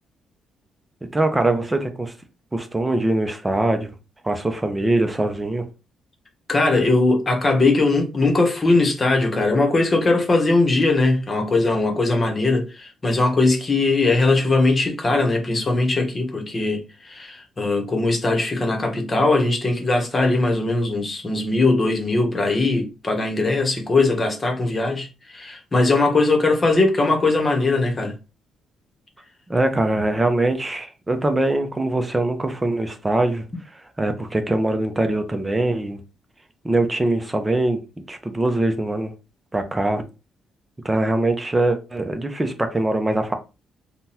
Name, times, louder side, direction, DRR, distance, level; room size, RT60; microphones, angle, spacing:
voice 1, 1.1-2.1 2.5-3.9 4.2-5.7 29.5-33.4 33.7-36.0 36.6-37.8 38.1-39.1 39.5-40.0 40.8-43.3, right 2 dB, 15° right, 0.7 m, -22 dB
voice 2, 6.5-28.2, left 2 dB, 30° left, 1.0 m, -20 dB
3.7 x 2.3 x 2.8 m
cardioid pair, 90°, 0 cm